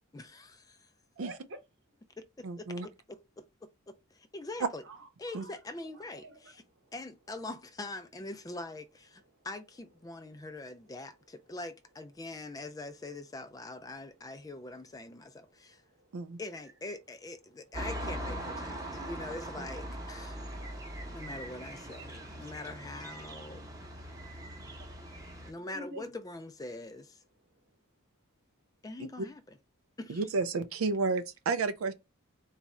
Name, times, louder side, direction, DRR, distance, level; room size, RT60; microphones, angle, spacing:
voice 1, 0.1-0.9 2.2-3.5 3.9-4.8 5.2-6.6 6.9-15.8 16.4-20.4 21.1-23.7 25.5-27.2 28.8-29.6 30.0-30.3, left 2 dB, 15° left, 0.3 m, -43 dB
voice 2, 1.2-1.6 4.8-5.5 5.9-6.9 9.3-9.5 10.3-10.5 15.5-16.3 20.3-21.2 24.0-24.5 25.5-26.1, right 1 dB, 55° right, 0.9 m, -51 dB
voice 3, 2.4-2.9 4.6-4.7 5.3-5.4 16.1-16.4 29.0-29.3 30.1-31.9, right 4 dB, 80° right, 0.4 m, -31 dB
sound 1, 17.7-25.5, right 1 dB, 15° right, 0.8 m, -41 dB
4.0 x 2.4 x 4.1 m
head